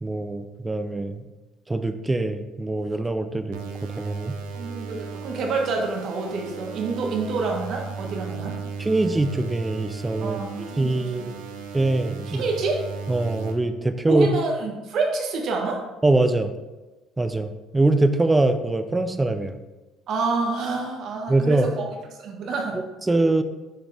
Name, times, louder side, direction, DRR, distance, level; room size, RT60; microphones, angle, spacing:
voice 1, 0.0-1.2 1.7-3.6 3.9-4.4 8.8-11.3 11.7-12.4 13.1-14.3 16.0-16.5 17.2-19.6 21.3-21.7 22.7-23.4, right 2 dB, 15° right, 10 dB, 0.6 m, -23 dB
sound 1, 3.5-13.5, right 5 dB, 85° right, 0.7 m, -36 dB
voice 2, 4.5-8.6 10.2-11.6 12.3-12.8 14.1-15.8 20.1-22.8, right 3 dB, 60° right, 1 dB, 1.4 m, -28 dB
7.3 x 4.9 x 3.4 m, 1.1 s
supercardioid pair, 75°, 0 cm